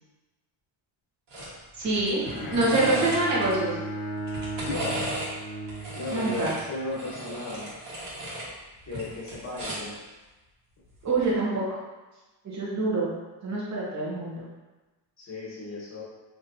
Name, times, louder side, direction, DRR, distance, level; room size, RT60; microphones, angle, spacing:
sound 1, 1.3-1.5 1.8-3.5 4.2-5.3 5.7-8.5 8.8-10.0 11.1-11.3, right 1 dB, 60° right, 1.5 m, -35 dB
voice 1, 1.7-3.8 6.1-6.5 11.0-11.8 12.4-13.1 13.4-14.4, right 2 dB, 35° right, -5 dB, 1.1 m, -26 dB
Bowed string instrument, 2.2-6.4, right 1 dB, 50° left, 1.1 m, -35 dB
voice 2, 4.6-5.0 5.9-7.7 8.8-10.0 15.2-16.0, left 2 dB, 35° left, -5 dB, 1.3 m, -35 dB
4.0 x 2.9 x 2.7 m, 1.2 s
cardioid pair, 120°, 47 cm